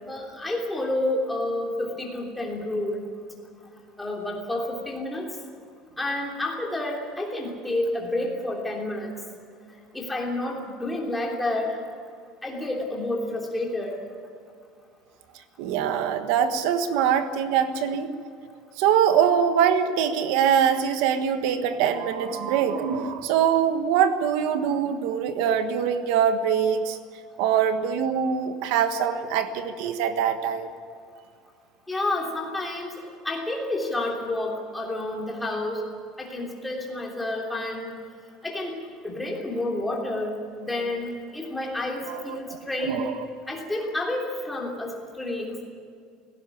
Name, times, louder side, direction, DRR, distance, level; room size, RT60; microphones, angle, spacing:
voice 1, 0.1-3.1 4.0-5.3 6.0-9.2 9.9-11.8 12.4-14.0 31.9-32.9 33.2-35.8 36.2-38.0 38.4-38.8 39.0-43.1 43.5-45.6, left 2 dB, 5° left, -1 dB, 3.2 m, -29 dB
voice 2, 15.6-18.1 18.8-27.0 27.4-30.7 42.0-42.6 42.8-43.1, right 8 dB, 65° right, 8 dB, 1.4 m, -23 dB
18.0 x 17.0 x 9.9 m, 2.3 s
cardioid pair, 170°, 0 cm